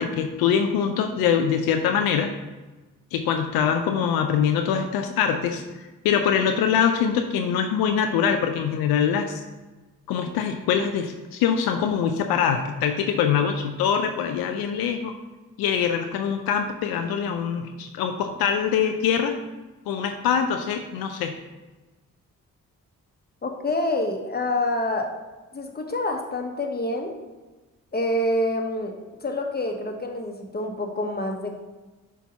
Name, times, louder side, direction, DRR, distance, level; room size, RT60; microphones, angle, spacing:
voice 1, 0.0-2.3 3.1-9.4 10.1-15.1 15.6-19.3 19.9-21.3, left 7 dB, 80° left, 5 dB, 0.5 m, -23 dB
voice 2, 23.4-25.1 25.5-27.1 27.9-28.9 29.2-31.5, left 1 dB, 25° left, 3 dB, 1.1 m, -27 dB
6.3 x 2.7 x 5.5 m, 1.2 s
hypercardioid pair, 40°, 36 cm